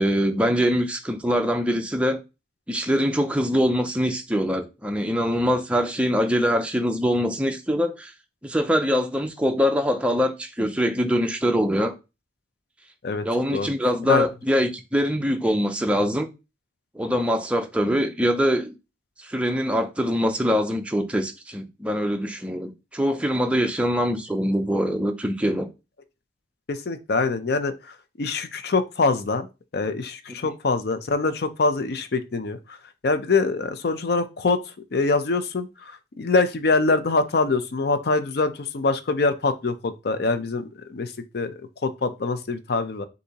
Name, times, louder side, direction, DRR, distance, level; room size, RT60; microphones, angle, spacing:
voice 1, 0.0-2.2 2.7-8.1 8.4-11.9 13.2-16.3 16.9-18.7 19.2-25.7, equal, 5° right, 0.5 m, -23 dB
voice 2, 26.7-29.5 29.7-32.8 33.0-34.6 34.9-43.1, left 3 dB, 55° left, 0.5 m, -24 dB
6.6 x 2.7 x 2.8 m
head